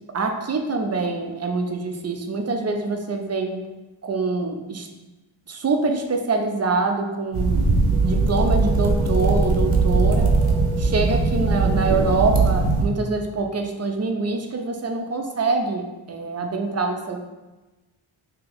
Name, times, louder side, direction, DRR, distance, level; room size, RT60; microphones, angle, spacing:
voice 1, 0.1-3.6 4.0-4.9 5.5-7.7 8.0-10.3 10.8-17.2, right 3 dB, 35° right, 4 dB, 0.5 m, -25 dB
sound 1, 7.3-12.9, right 3 dB, 80° right, 0.7 m, -20 dB
2.9 x 2.8 x 3.9 m, 1.1 s
wide cardioid pair, 75°, 49 cm